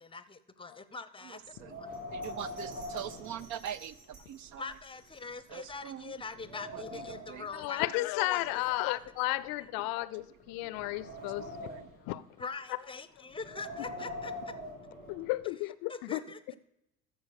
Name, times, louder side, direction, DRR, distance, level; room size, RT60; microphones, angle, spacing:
voice 1, 0.0-1.4 1.8-1.9 4.6-8.4 9.6-9.7 12.4-14.5 15.9-16.6, left 4 dB, 10° left, 0.7 m, -43 dB
Wind, 1.5-4.1 4.5-4.6 5.3-5.4 5.9-7.5 8.3-9.9 10.4-12.0 13.3-15.4, left 1 dB, 85° right, 3.4 m, -44 dB
Bell, 1.9-6.3 6.7-6.8, right 4 dB, 70° right, 4.5 m, -56 dB
voice 2, 2.1-3.9 4.3-4.6 5.5-6.0 7.3-7.4, right 10 dB, 45° right, 0.5 m, -41 dB
voice 3, 7.5-11.7 12.1-12.2 15.1-16.2, left 18 dB, 55° left, 0.6 m, -33 dB
13.5 x 4.6 x 6.4 m
hypercardioid pair, 70°, 43 cm